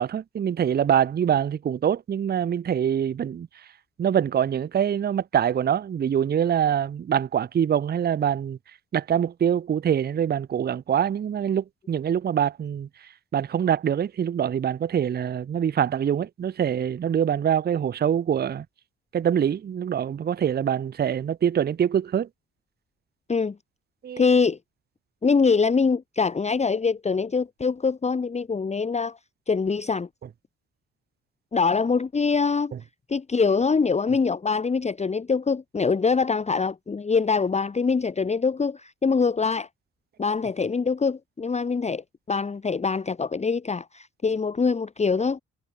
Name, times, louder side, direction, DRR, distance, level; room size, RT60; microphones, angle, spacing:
voice 1, 0.0-3.5 4.0-8.6 8.9-12.9 13.3-18.7 19.1-22.3 24.0-24.2, right 9 dB, 35° right, 0.6 m, -24 dB
voice 2, 24.2-24.6 25.2-29.2 29.5-30.1 31.5-32.7 33.1-39.7 40.2-45.4, left 5 dB, 20° left, 0.9 m, -24 dB
cardioid pair, 90°, 30 cm